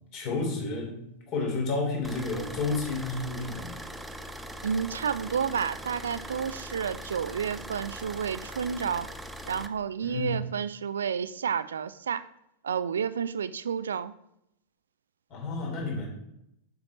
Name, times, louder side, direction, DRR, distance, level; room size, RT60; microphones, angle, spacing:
voice 1, 0.1-1.0 1.3-3.8 10.0-10.4 15.3-16.1, left 3 dB, 40° left, 0 dB, 3.0 m, -31 dB
sound 1, 2.0-9.7, equal, 5° right, 0.6 m, -41 dB
voice 2, 4.6-9.1 9.5-12.3 12.6-14.1, right 7 dB, 70° right, 16 dB, 0.3 m, -30 dB
7.2 x 6.3 x 4.1 m, 0.80 s
figure-of-eight pair, 90°, 0 cm